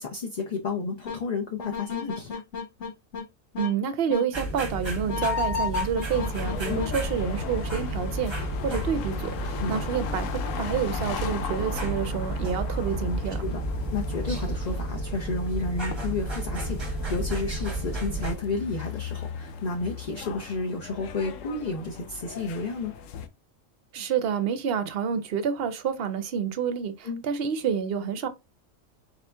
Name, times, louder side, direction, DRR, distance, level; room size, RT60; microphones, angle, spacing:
voice 1, 0.0-2.4 6.6-6.9 9.6-9.8 13.4-13.6 13.9-22.9 27.0-27.2, left 3 dB, 40° left, 0.7 m, -31 dB
sound 1, 1.0-1.2 1.6-3.2 3.5-3.7 4.1-4.2 5.1-6.9, left 5 dB, 60° left, 1.4 m, -31 dB
voice 2, 3.6-10.3 10.6-13.4 23.9-28.3, right 7 dB, 55° right, 0.7 m, -28 dB
sound 2, 4.3-18.3, right 2 dB, 20° right, 1.1 m, -32 dB
sound 3, 6.1-23.3, left 6 dB, 75° left, 0.9 m, -37 dB
4.2 x 2.8 x 3.3 m
omnidirectional pair, 1.4 m